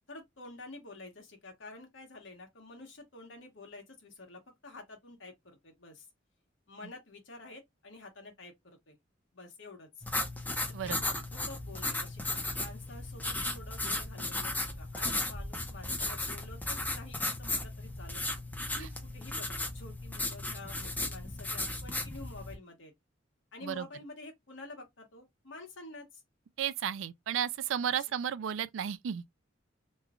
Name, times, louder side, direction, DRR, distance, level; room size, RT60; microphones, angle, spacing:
voice 1, 0.1-6.1 6.7-9.0 9.3-9.9 10.8-18.2 18.7-22.9 23.5-26.2 27.8-28.2, left 2 dB, 75° left, 1.3 m, -49 dB
sound 1, 10.0-22.5, left 2 dB, 10° left, 0.7 m, -35 dB
voice 2, 26.6-29.2, right 9 dB, 75° right, 0.3 m, -33 dB
3.1 x 2.3 x 3.5 m
head